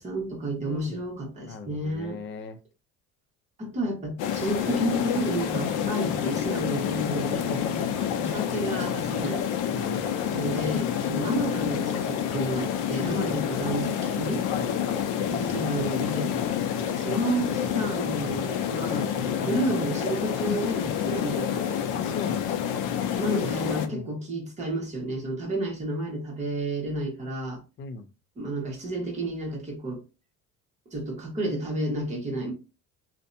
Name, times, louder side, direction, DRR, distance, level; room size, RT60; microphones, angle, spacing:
voice 1, 0.0-2.2 3.6-7.6 8.2-9.5 10.3-14.5 15.3-16.3 16.9-21.7 23.2-27.6 28.4-30.0 30.9-32.5, right 1 dB, 25° right, 1.0 m, -31 dB
voice 2, 0.6-1.0 1.4-2.6 7.6-8.0 9.7-10.2 14.5-15.1 16.3-16.6 19.4-19.6 21.9-22.5 23.4-24.1 27.8-28.1, left 4 dB, 40° left, 0.4 m, -38 dB
sound 1, 4.2-23.9, left 9 dB, 90° left, 0.5 m, -28 dB
2.6 x 2.1 x 2.5 m
cardioid pair, 140°, 31 cm